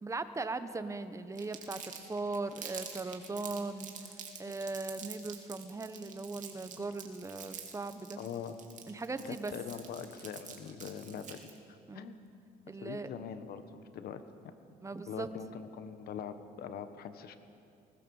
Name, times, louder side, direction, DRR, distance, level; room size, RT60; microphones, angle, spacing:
voice 1, 0.0-8.2 8.9-9.5 11.9-12.1 12.7-13.1 14.8-15.3, right 3 dB, 15° right, 11 dB, 1.2 m, -39 dB
Crumpling crinkling, 1.4-11.6, right 7 dB, 45° right, 3.0 m, -47 dB
voice 2, 8.2-8.6 9.2-12.2 12.7-14.2 15.1-17.4, left 7 dB, 65° left, 10 dB, 1.5 m, -43 dB
20.5 x 19.5 x 7.3 m, 2.6 s
cardioid pair, 110°, 17 cm